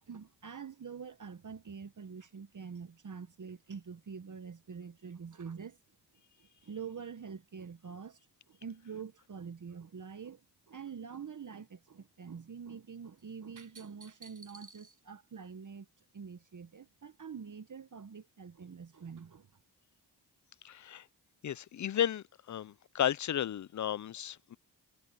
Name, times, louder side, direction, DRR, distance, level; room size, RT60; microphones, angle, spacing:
voice 1, 0.1-5.8 6.4-8.2 8.5-10.4 10.7-15.9 16.1-19.5, right 6 dB, 45° right, 1.2 m, -46 dB
voice 2, 20.6-21.1 21.4-24.6, left 10 dB, 45° left, 0.5 m, -34 dB
cardioid pair, 50°, 42 cm